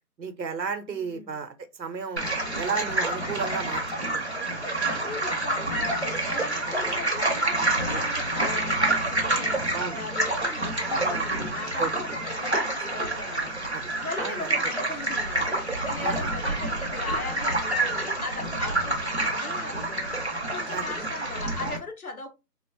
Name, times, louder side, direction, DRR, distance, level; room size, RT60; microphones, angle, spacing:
voice 1, 0.2-2.3 2.6-4.3 9.7-10.0 10.8-11.4 11.8-11.9 13.7-13.9 14.2-14.5 16.0-16.3 20.7-20.8, right 5 dB, 90° right, 0.7 m, -33 dB
voice 2, 0.9-1.4 4.8-15.6 15.8-20.2 20.5-22.3, left 3 dB, 60° left, 0.5 m, -39 dB
sound 1, 2.2-21.8, right 2 dB, 45° right, 0.5 m, -28 dB
3.0 x 2.0 x 2.5 m
figure-of-eight pair, 170°, 50 cm